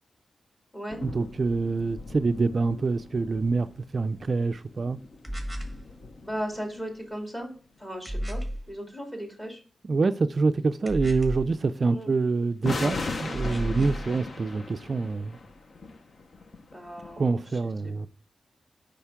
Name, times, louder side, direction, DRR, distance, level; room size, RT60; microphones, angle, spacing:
sound 1, 0.9-7.1 12.6-17.3, left 3 dB, 60° left, 0.8 m, -39 dB
voice 1, 1.0-5.0 9.8-15.4 17.2-18.1, right 4 dB, 50° right, 0.3 m, -26 dB
sound 2, 5.2-5.8 8.1-8.6 10.9-11.5 13.3-14.1, equal, ahead, 1.3 m, -32 dB
voice 2, 6.2-7.5 7.8-9.6 11.9-12.1 16.7-17.4 17.8-17.9, equal, 20° left, 2.3 m, -36 dB
5.6 x 5.1 x 3.5 m
wide cardioid pair, 85°, 0 cm